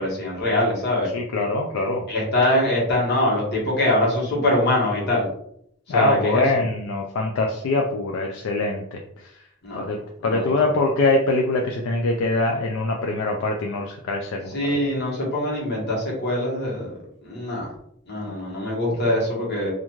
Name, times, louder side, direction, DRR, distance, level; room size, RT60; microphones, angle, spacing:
voice 1, 0.0-1.1 2.1-5.3 5.9-6.4 9.6-9.8 10.2-10.7 14.5-16.9 17.2-17.7 18.1-19.7, left 1 dB, 50° left, -4 dB, 1.1 m, -23 dB
voice 2, 1.1-2.1 5.9-9.0 9.8-14.5, left 2 dB, 70° left, 1 dB, 0.3 m, -23 dB
2.4 x 2.3 x 3.0 m, 0.69 s
head